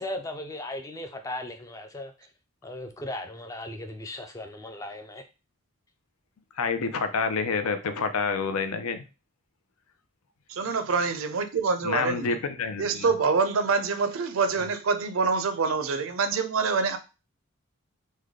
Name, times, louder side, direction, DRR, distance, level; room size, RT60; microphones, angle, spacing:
voice 1, 0.0-2.1 2.6-5.2, left 1 dB, 15° left, 0.3 m, -37 dB
voice 2, 6.6-9.0 11.8-13.1, left 5 dB, 90° left, 0.5 m, -28 dB
voice 3, 10.5-12.3 12.8-17.0, right 4 dB, 70° right, 0.4 m, -26 dB
3.2 x 2.2 x 3.6 m
head